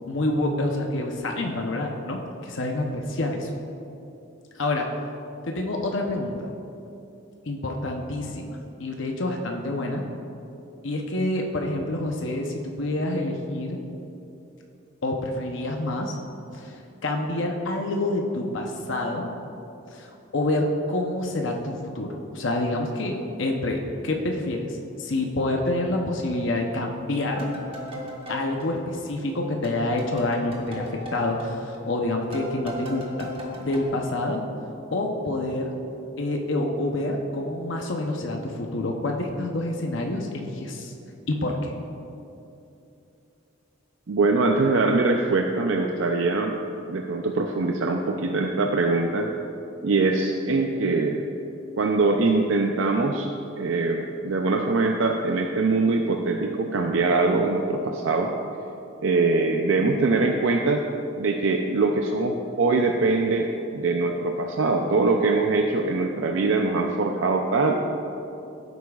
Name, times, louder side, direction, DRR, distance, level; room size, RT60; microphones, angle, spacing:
voice 1, 0.1-3.5 4.5-4.9 5.5-6.5 7.5-10.0 10.8-13.8 15.0-16.2 16.5-19.3 19.9-27.5 28.3-33.3 33.6-34.4 34.9-35.7 36.2-40.9 41.3-41.7, left 2 dB, 65° left, 2 dB, 0.8 m, -27 dB
sound 1, 27.2-29.4 29.6-33.8, left 1 dB, 30° right, 1.3 m, -37 dB
voice 2, 44.1-46.6 46.9-49.3 49.8-51.2 51.8-53.3 53.6-58.3 59.0-60.8 61.2-67.8, right 3 dB, 70° right, 2 dB, 0.5 m, -23 dB
15.0 x 8.1 x 2.4 m, 2.8 s
head